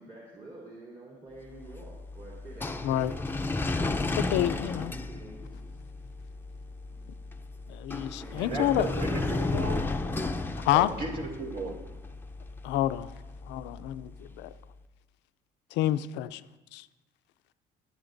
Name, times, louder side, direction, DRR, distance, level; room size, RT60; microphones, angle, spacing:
voice 1, 0.0-3.1 4.2-5.6 8.2-9.2, right 2 dB, 35° right, -4 dB, 3.0 m, -48 dB
sound 1, 1.5-14.6, left 3 dB, 10° left, 0.6 m, -34 dB
voice 2, 4.1-4.9 7.7-8.9 10.6-10.9 12.6-13.1 13.5-14.5 15.8-16.3 16.7-16.8, left 13 dB, 80° left, 12 dB, 0.5 m, -28 dB
voice 3, 8.4-9.8 10.7-11.8, right 2 dB, 65° right, 0 dB, 2.7 m, -35 dB
22.0 x 7.9 x 2.6 m, 1.2 s
cardioid pair, 90°, 18 cm